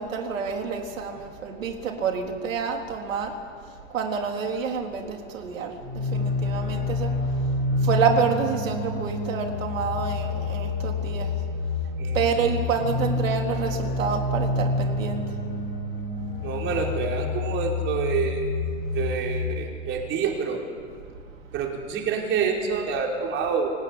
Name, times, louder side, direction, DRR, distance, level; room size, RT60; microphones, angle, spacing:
voice 1, 0.0-3.4 3.9-7.1 7.8-11.3 12.1-15.3, right 6 dB, 90° right, 3 dB, 3.9 m, -28 dB
sound 1, 5.8-19.5, left 2 dB, 25° left, 5.3 m, -28 dB
voice 2, 12.0-12.4 16.4-18.4 18.9-20.6 21.5-23.7, right 6 dB, 30° right, 0 dB, 5.0 m, -27 dB
26.5 x 18.0 x 9.8 m, 2.1 s
supercardioid pair, 145°, 38 cm